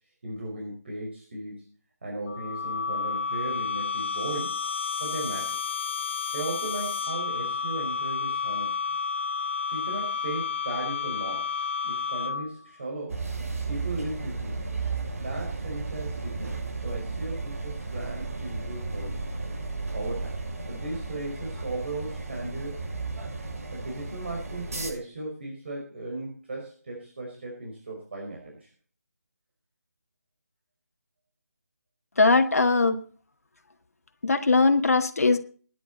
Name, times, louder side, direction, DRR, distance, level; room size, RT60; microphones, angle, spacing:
voice 1, 0.2-1.7 2.0-4.6 5.0-5.6 6.3-8.8 9.7-11.5 11.8-13.2 13.7-14.6 15.1-19.3 19.9-20.4 20.7-22.9 23.7-28.7, right 2 dB, 40° right, -1 dB, 5.2 m, -36 dB
sound 1, 2.3-12.6, left 5 dB, 40° left, 1.2 m, -31 dB
sound 2, 13.1-24.9, right 3 dB, 60° right, 6.7 m, -34 dB
voice 2, 32.2-33.0 34.2-35.4, left 3 dB, 65° left, 5 dB, 1.9 m, -20 dB
18.5 x 11.0 x 4.2 m, 0.43 s
figure-of-eight pair, 175°, 9 cm